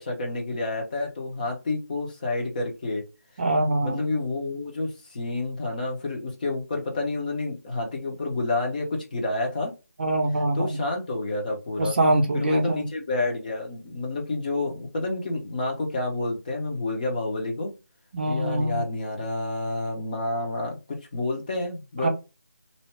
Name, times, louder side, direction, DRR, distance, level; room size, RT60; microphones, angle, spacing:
voice 1, 0.0-3.0 3.5-9.7 10.3-12.0 12.3-17.7 18.2-22.1, left 2 dB, 30° left, 0.8 m, -29 dB
voice 2, 3.4-4.0 10.0-10.8 11.8-12.9 18.1-18.8 22.0-22.1, right 1 dB, 35° right, 0.6 m, -24 dB
2.7 x 2.2 x 3.2 m
figure-of-eight pair, 165°, 9 cm